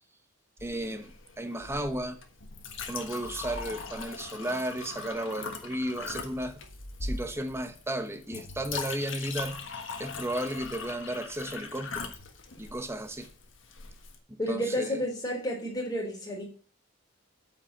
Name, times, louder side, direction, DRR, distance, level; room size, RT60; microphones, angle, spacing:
Chink clink, 0.6-14.2, left 4 dB, 65° left, 1.5 m, -40 dB
voice 1, 0.6-2.2 2.9-6.6 7.0-9.6 10.0-12.1 12.6-13.3 14.3-15.0, right 1 dB, 15° right, 1.1 m, -34 dB
voice 2, 14.4-16.4, equal, 20° left, 3.8 m, -31 dB
9.1 x 5.5 x 7.3 m
head